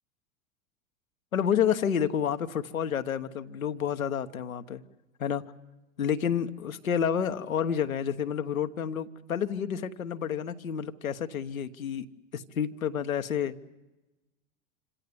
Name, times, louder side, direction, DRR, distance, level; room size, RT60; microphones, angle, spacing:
voice 1, 1.3-4.8 5.2-5.4 6.0-12.1 12.3-13.7, left 8 dB, 90° left, 7 dB, 1.1 m, -29 dB
26.0 x 17.0 x 9.5 m, 1.1 s
hypercardioid pair, 95°, 40 cm